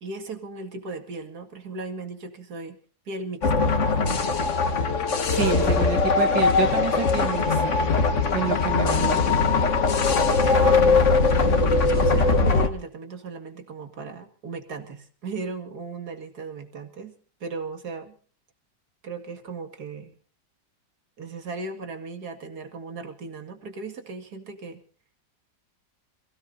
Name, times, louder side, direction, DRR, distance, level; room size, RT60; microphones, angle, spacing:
voice 1, 0.0-2.8 3.1-3.7 10.6-11.1 11.4-18.2 19.0-20.2 21.2-24.8, right 3 dB, 65° right, 7 dB, 2.6 m, -37 dB
sound 1, 3.4-12.7, left 4 dB, 45° left, 1.5 m, -21 dB
voice 2, 5.3-7.8 8.3-9.3, right 7 dB, 90° right, 7 dB, 2.0 m, -28 dB
27.0 x 17.0 x 2.7 m, 0.42 s
omnidirectional pair, 1.9 m